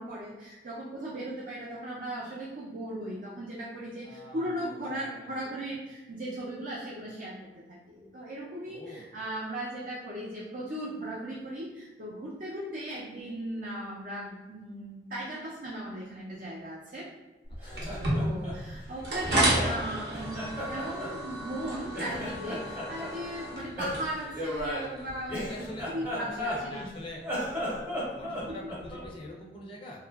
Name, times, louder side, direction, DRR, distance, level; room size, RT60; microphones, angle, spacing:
voice 1, 0.0-7.4 7.7-17.1 18.1-20.4 20.7-26.9 28.2-28.5, right 1 dB, 50° right, -6 dB, 0.4 m, -37 dB
voice 2, 4.0-5.3 8.7-9.1 17.6-18.0 25.4-27.2 27.9-30.0, left 1 dB, 30° left, -2 dB, 0.4 m, -44 dB
Laughter, 17.5-19.8 20.1-21.7 21.9-23.1 23.8-26.9 27.2-29.1, equal, 10° right, 0.7 m, -35 dB
sound 1, 17.8-25.7, right 1 dB, 75° right, 0.8 m, -33 dB
2.7 x 2.4 x 2.2 m, 1.2 s
head